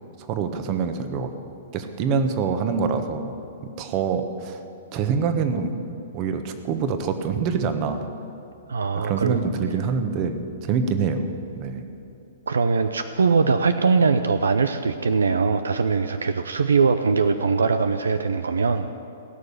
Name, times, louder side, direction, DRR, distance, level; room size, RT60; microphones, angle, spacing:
voice 1, 0.2-1.3 1.7-3.4 3.6-4.6 4.9-5.7 6.1-8.1 8.9-11.2 11.6-11.8, right 5 dB, 40° right, 8 dB, 1.4 m, -25 dB
voice 2, 8.7-9.4 12.5-18.9, right 4 dB, 80° right, 9 dB, 0.6 m, -21 dB
17.5 x 6.8 x 10.0 m, 2.9 s
hypercardioid pair, 115°, 0 cm